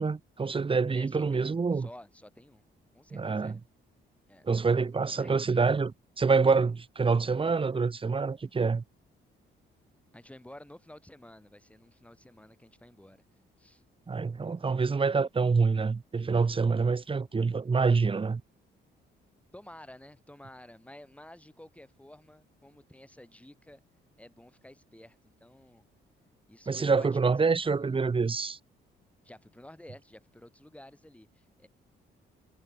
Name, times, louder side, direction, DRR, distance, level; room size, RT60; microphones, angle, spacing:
voice 1, 0.0-1.9 3.1-3.6 4.4-8.8 14.1-18.4 26.7-28.6, right 4 dB, 25° right, 1.3 m, -26 dB
voice 2, 0.9-2.6 2.9-3.6 4.3-4.4 5.1-5.4 10.1-13.2 13.6-13.8 19.5-23.8 24.2-25.8 26.5-27.3 27.6-28.0 29.2-31.7, left 1 dB, 5° left, 6.6 m, -52 dB
cardioid pair, 90°, 20 cm